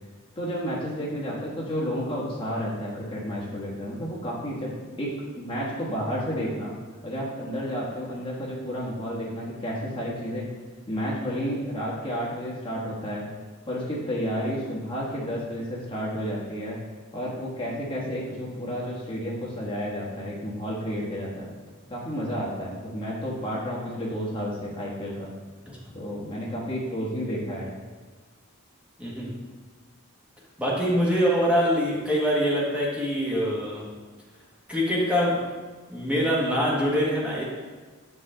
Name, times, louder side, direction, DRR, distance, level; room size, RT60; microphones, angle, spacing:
voice 1, 0.4-6.7 7.0-10.5 10.9-13.3 13.7-16.8 17.1-21.5 21.9-25.3 25.9-27.7, equal, 25° left, -5 dB, 1.3 m, -31 dB
voice 2, 29.0-29.3 30.6-33.8 34.7-35.4 35.9-37.4, equal, 5° right, -5 dB, 1.4 m, -24 dB
8.5 x 4.7 x 3.7 m, 1.4 s
head